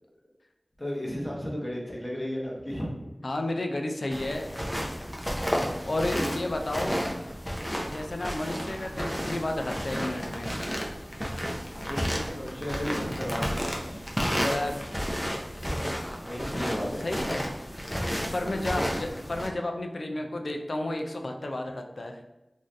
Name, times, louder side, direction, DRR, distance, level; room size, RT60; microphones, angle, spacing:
voice 1, 0.8-3.1 4.9-5.0 5.8-5.9 11.9-14.0 16.2-17.1 18.4-18.6, equal, 25° left, -3 dB, 0.8 m, -34 dB
voice 2, 3.2-4.6 5.8-7.0 7.8-10.5 14.4-14.8 17.0-17.5 18.3-22.2, left 1 dB, 75° left, 4 dB, 0.3 m, -32 dB
sound 1, 4.1-19.5, equal, 5° left, 0.5 m, -32 dB
2.6 x 2.3 x 3.2 m, 0.97 s
wide cardioid pair, 60°, 0 cm